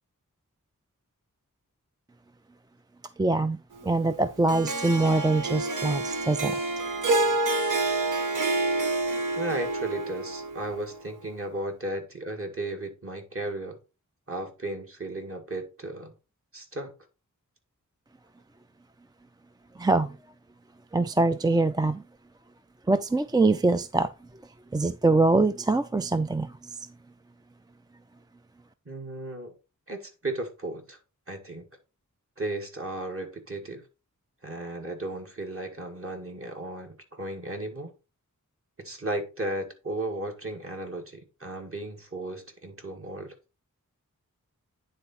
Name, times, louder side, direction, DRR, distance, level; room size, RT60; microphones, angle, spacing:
voice 1, 3.2-3.6 3.8-6.6 19.8-20.2 20.9-22.0 22.9-24.1 24.7-26.8, right 2 dB, 15° right, 0.4 m, -24 dB
Harp, 4.5-10.8, right 2 dB, 70° right, 1.2 m, -28 dB
voice 2, 9.3-13.8 14.3-16.1 16.5-16.9 28.9-29.5 29.9-31.0 31.3-31.6 32.4-33.8 34.4-37.9 38.8-43.3, right 2 dB, 45° right, 2.1 m, -35 dB
9.6 x 4.0 x 4.3 m
wide cardioid pair, 60°, 32 cm